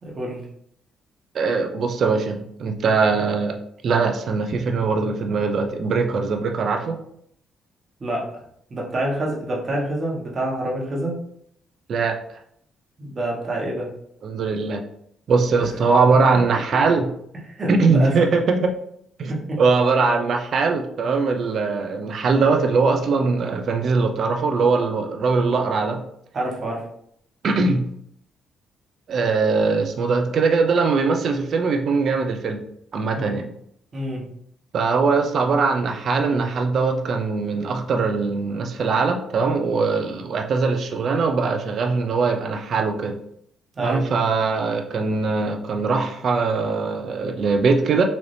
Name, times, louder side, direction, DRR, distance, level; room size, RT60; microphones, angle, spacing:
voice 1, 0.0-0.5 8.0-8.4 8.7-11.2 13.0-13.9 16.3-16.4 17.5-18.1 19.3-19.6 26.3-26.9 33.1-33.4 33.9-34.2 43.7-44.1, right 1 dB, 40° right, -3 dB, 1.3 m, -27 dB
voice 2, 1.3-3.6 3.8-7.0 11.9-12.1 14.2-14.8 15.3-17.0 17.7-18.7 19.2-26.0 27.4-27.8 29.1-32.6 32.9-33.4 34.7-43.2 43.8-48.0, right 4 dB, 60° right, 5 dB, 0.6 m, -21 dB
4.1 x 2.8 x 3.3 m, 0.70 s
cardioid pair, 90°, 0 cm